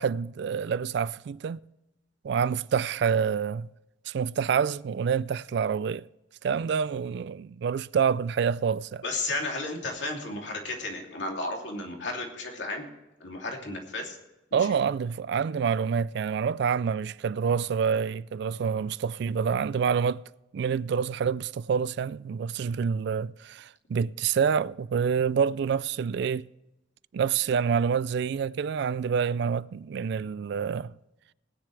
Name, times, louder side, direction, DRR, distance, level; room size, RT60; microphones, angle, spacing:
voice 1, 0.0-1.6 2.2-3.7 4.1-6.1 6.4-9.0 14.5-20.2 20.5-26.5 27.1-31.0, right 6 dB, 60° right, 0.3 m, -27 dB
voice 2, 9.0-12.9 13.2-14.2 14.7-14.8, left 2 dB, 65° left, 2.8 m, -33 dB
20.0 x 10.0 x 3.3 m
head